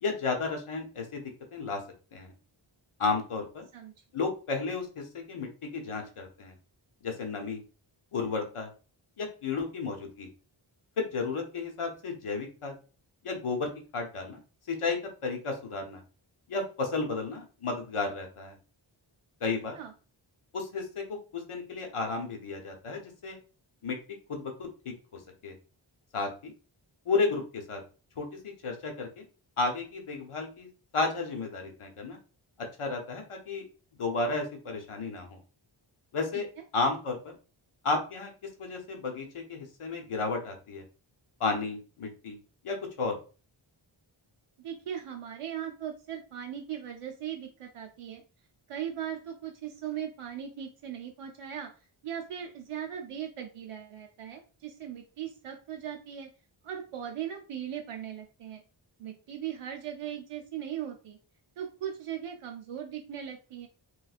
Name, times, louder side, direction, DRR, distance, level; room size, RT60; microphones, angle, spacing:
voice 1, 0.0-1.8 2.1-2.3 3.0-3.7 4.1-6.5 7.0-7.6 8.1-8.7 9.2-10.3 11.0-12.7 13.2-14.4 14.7-16.0 16.5-18.6 19.4-19.8 20.5-21.0 21.3-23.4 23.8-24.0 24.3-24.9 25.4-25.5 26.1-26.5 27.1-27.8 28.2-28.3 28.6-29.2 29.6-30.7 30.9-32.2 32.8-33.6 34.0-35.4 36.1-36.5 36.7-37.2 37.8-38.3 38.6-40.8 41.4-42.4 42.6-43.2, left 4 dB, 90° left, 3 dB, 0.9 m, -32 dB
voice 2, 44.6-48.2 48.7-51.7 52.0-56.3 56.6-58.6 59.0-61.2 61.6-63.7, right 9 dB, 85° right, 3 dB, 0.6 m, -38 dB
3.1 x 3.1 x 2.4 m, 0.36 s
wide cardioid pair, 75°, 50 cm